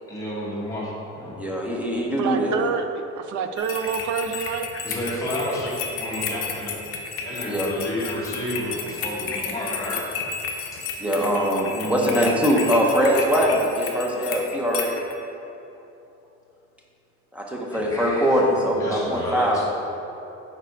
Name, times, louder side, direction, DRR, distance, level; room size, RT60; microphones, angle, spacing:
voice 1, 0.1-1.4 4.8-6.7 7.2-10.0 11.7-12.3 17.7-19.7, equal, 10° left, -7 dB, 1.2 m, -31 dB
voice 2, 1.4-2.7 7.5-7.7 11.0-14.9 17.3-19.7, equal, 5° right, -2 dB, 0.6 m, -22 dB
voice 3, 2.2-2.9 3.2-4.7, right 7 dB, 70° right, 7 dB, 0.5 m, -27 dB
sound 1, 3.6-15.1, left 5 dB, 50° left, 0.6 m, -32 dB
4.8 x 4.6 x 4.5 m, 2.9 s
cardioid pair, 165°, 30 cm